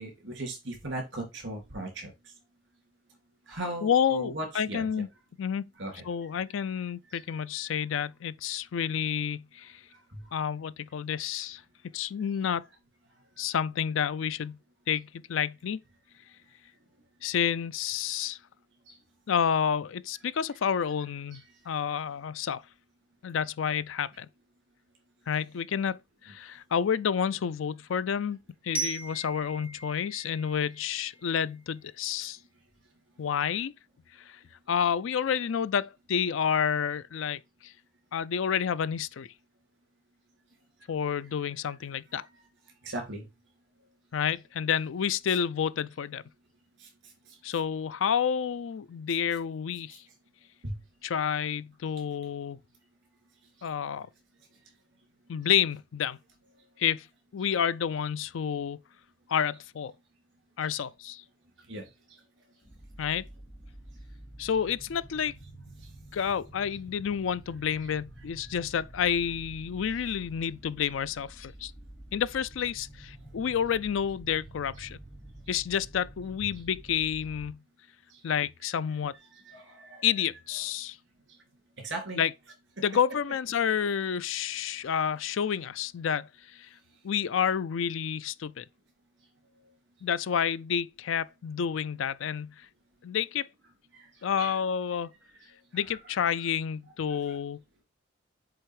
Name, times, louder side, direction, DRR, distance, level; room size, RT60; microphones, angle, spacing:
voice 1, 0.0-2.1 3.5-4.9 5.8-6.0 7.1-7.2 10.1-10.3 18.9-19.0 21.3-21.4 42.8-43.3 46.8-46.9 47.3-47.4 49.9-50.0 50.6-50.8 53.6-53.7 61.7-62.2 68.4-68.5 78.1-78.2 79.5-80.1 81.8-82.2 82.8-82.9 93.9-94.1 94.3-94.6 97.1-97.4, right 1 dB, 65° right, 3.5 m, -38 dB
voice 2, 3.8-5.1 5.4-5.7 6.0-9.8 10.3-11.6 11.9-12.6 13.4-14.6 14.9-15.8 17.2-18.4 19.3-22.6 23.2-24.3 25.3-32.4 33.2-33.7 34.2-34.4 34.7-37.7 38.1-39.3 40.9-42.3 44.1-46.2 47.4-50.0 51.0-52.6 53.6-54.1 55.3-56.2 56.8-57.1 57.3-58.8 59.3-59.9 60.6-61.2 63.0-63.3 64.4-65.4 66.1-71.7 72.1-75.0 75.5-77.6 78.2-79.2 80.0-81.0 82.2-82.3 82.8-86.7 87.0-88.6 90.0-92.7 93.0-93.5 94.2-95.1 95.7-97.6, left 8 dB, 85° left, 0.4 m, -29 dB
Glockenspiel, 28.7-31.6, right 3 dB, 10° right, 0.8 m, -38 dB
sound 1, 62.6-77.5, right 1 dB, 15° left, 1.7 m, -49 dB
7.8 x 3.5 x 4.8 m
head